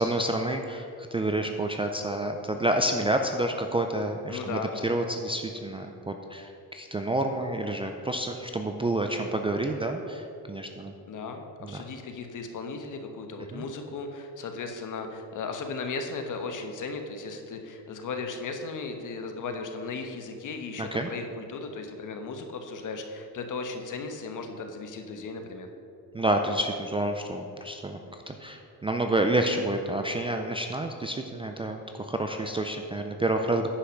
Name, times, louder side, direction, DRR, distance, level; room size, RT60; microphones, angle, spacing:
voice 1, 0.0-10.9 11.6-11.8 13.5-13.6 20.8-21.1 26.1-28.0 28.3-33.7, right 1 dB, 15° right, 4 dB, 0.4 m, -29 dB
voice 2, 4.3-4.9 11.1-25.7, left 4 dB, 50° left, 5 dB, 1.1 m, -36 dB
10.0 x 5.6 x 6.4 m, 2.7 s
cardioid pair, 135°, 40 cm